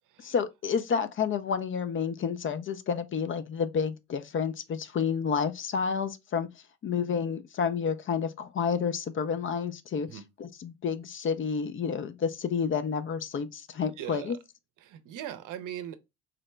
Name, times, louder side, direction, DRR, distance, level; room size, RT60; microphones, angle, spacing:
voice 1, 0.2-6.5 6.8-14.4, left 6 dB, 35° left, 0.5 m, -30 dB
voice 2, 14.0-14.3 14.8-16.0, right 11 dB, 60° right, 0.7 m, -39 dB
3.9 x 2.1 x 3.2 m
hypercardioid pair, 60°, 35 cm